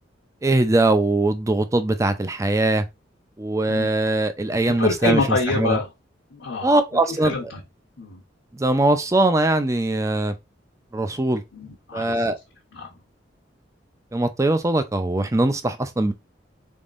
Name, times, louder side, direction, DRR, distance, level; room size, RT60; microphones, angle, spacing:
voice 1, 0.4-2.9 3.4-5.2 5.6-5.8 6.6-7.3 8.5-10.3 10.9-11.4 11.9-12.4 14.1-16.1, right 2 dB, 15° right, 0.4 m, -21 dB
voice 2, 4.8-5.9 6.3-6.7 7.1-7.6 8.0-8.2 11.5-12.3 12.7-12.9, left 3 dB, 90° left, 1.0 m, -26 dB
3.9 x 3.7 x 2.5 m
head